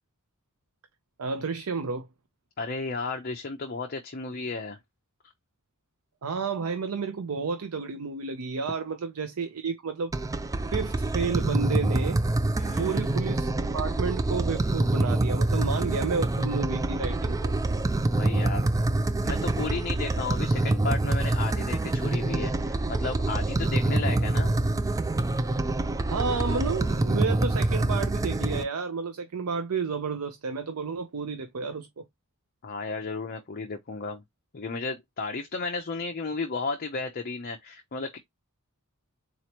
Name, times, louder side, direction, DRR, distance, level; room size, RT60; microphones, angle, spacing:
voice 1, 1.2-2.1 6.2-10.1 10.7-12.2 12.8-17.5 26.1-32.0, right 5 dB, 80° right, 0.6 m, -31 dB
voice 2, 2.6-4.8 12.6-13.0 18.1-18.7 19.2-24.6 32.6-34.2 34.5-38.2, left 4 dB, 45° left, 0.6 m, -33 dB
sound 1, 10.1-28.6, right 2 dB, 15° right, 0.3 m, -26 dB
4.2 x 2.9 x 2.9 m
head